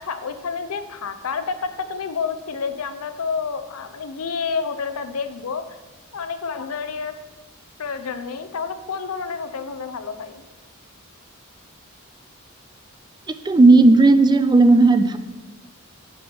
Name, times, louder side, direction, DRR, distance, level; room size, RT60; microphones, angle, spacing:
voice 1, 0.0-5.6 6.1-7.2 7.8-10.4, left 5 dB, 85° left, 10 dB, 0.6 m, -29 dB
voice 2, 13.4-15.2, right 3 dB, 20° right, 11 dB, 0.4 m, -13 dB
10.0 x 4.4 x 4.6 m, 1.2 s
head